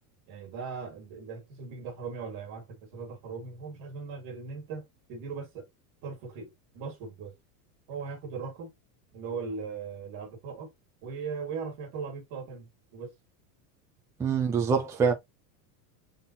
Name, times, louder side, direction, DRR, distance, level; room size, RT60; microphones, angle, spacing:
voice 1, 0.3-5.7 6.0-7.3 7.9-8.7 9.1-10.7 11.0-13.1, right 5 dB, 50° right, 1.9 m, -39 dB
voice 2, 14.2-15.1, right 6 dB, 5° right, 0.3 m, -25 dB
3.9 x 3.8 x 2.8 m
supercardioid pair, 150°, 48 cm